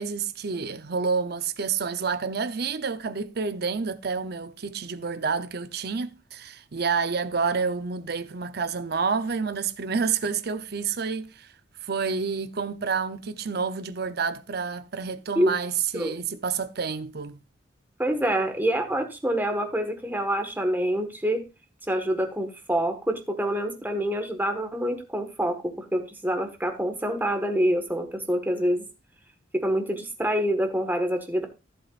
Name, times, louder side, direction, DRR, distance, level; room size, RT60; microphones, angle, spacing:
voice 1, 0.0-11.5 11.8-17.4, right 5 dB, 60° right, 0.7 m, -29 dB
voice 2, 18.0-21.4 21.9-28.8 29.5-31.5, right 1 dB, 10° right, 1.5 m, -26 dB
14.5 x 7.7 x 2.5 m
head